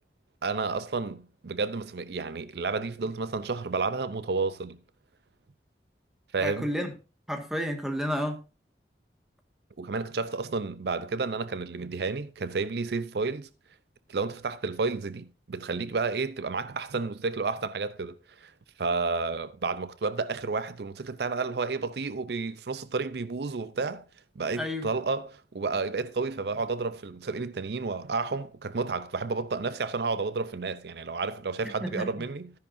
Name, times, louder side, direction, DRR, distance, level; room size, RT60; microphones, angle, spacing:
voice 1, 0.4-4.8 6.3-6.7 9.8-13.5 14.1-18.5 18.8-24.0 24.4-32.5, right 4 dB, 70° right, 0.5 m, -31 dB
voice 2, 6.4-6.9 7.3-8.4 24.6-24.9 31.8-32.3, equal, 5° right, 1.6 m, -31 dB
13.5 x 10.0 x 2.6 m
head